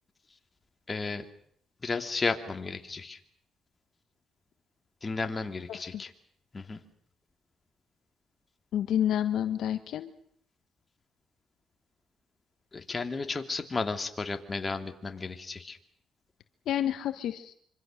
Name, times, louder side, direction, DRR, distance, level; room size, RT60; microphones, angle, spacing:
voice 1, 0.9-1.2 1.8-3.2 5.0-6.1 6.5-6.8 12.7-15.8, left 4 dB, 30° left, 6 dB, 2.8 m, -33 dB
voice 2, 5.7-6.0 8.7-10.1 16.7-17.5, left 10 dB, 75° left, 10 dB, 1.2 m, -29 dB
26.0 x 25.5 x 6.5 m, 0.63 s
cardioid pair, 90°, 0 cm